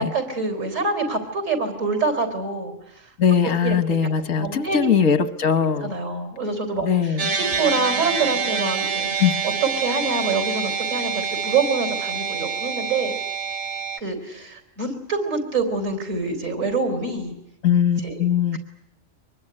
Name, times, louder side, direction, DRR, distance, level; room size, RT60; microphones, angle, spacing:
voice 1, 0.0-3.1 3.4-4.0 4.4-4.9 5.6-9.1 9.4-13.1 14.0-17.3 18.0-18.2, right 4 dB, 85° right, 7 dB, 4.4 m, -26 dB
voice 2, 3.2-5.9 6.8-7.3 9.2-9.3 17.6-18.6, left 7 dB, 85° left, 11 dB, 1.6 m, -20 dB
sound 1, 7.2-14.0, right 6 dB, 65° right, 1.6 m, -26 dB
24.5 x 20.5 x 9.9 m, 0.84 s
omnidirectional pair, 1.3 m